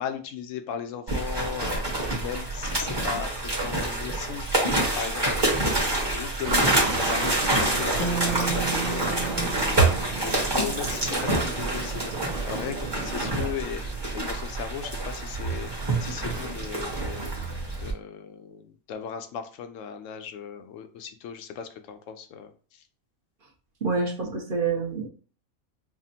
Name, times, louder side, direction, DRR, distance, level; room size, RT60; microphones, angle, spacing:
voice 1, 0.0-5.9 6.1-17.5 17.8-22.8, left 8 dB, 70° left, 7 dB, 0.9 m, -37 dB
sound 1, 1.1-17.9, right 2 dB, 20° right, 0.9 m, -27 dB
sound 2, 6.4-14.3, right 5 dB, 80° right, 0.4 m, -35 dB
sound 3, 8.0-11.3, right 5 dB, 50° left, 0.4 m, -34 dB
voice 2, 23.8-25.1, right 4 dB, 45° right, 0 dB, 0.8 m, -27 dB
5.7 x 2.1 x 2.8 m, 0.39 s
omnidirectional pair, 1.5 m